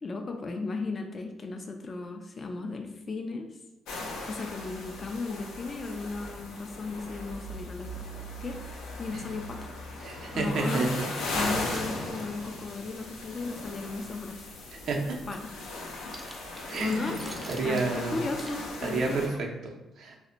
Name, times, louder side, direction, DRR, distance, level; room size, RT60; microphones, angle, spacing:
voice 1, 0.0-3.5 4.3-8.0 8.4-8.6 9.0-9.7 10.3-10.9 11.3-14.5 15.3-15.5 16.8-17.2 17.6-19.4, left 3 dB, 35° left, 4 dB, 0.3 m, -35 dB
sound 1, 3.9-19.3, left 2 dB, 90° left, 0.5 m, -38 dB
voice 2, 10.0-10.9 14.8-15.2 16.7-17.2 17.5-18.2 18.8-20.2, right 3 dB, 65° right, 1 dB, 0.5 m, -30 dB
sound 2, 11.5-12.8 15.9-19.0 19.3-19.4, right 1 dB, 15° right, 0.5 m, -47 dB
2.1 x 2.1 x 3.8 m, 1.1 s
cardioid pair, 90°, 0 cm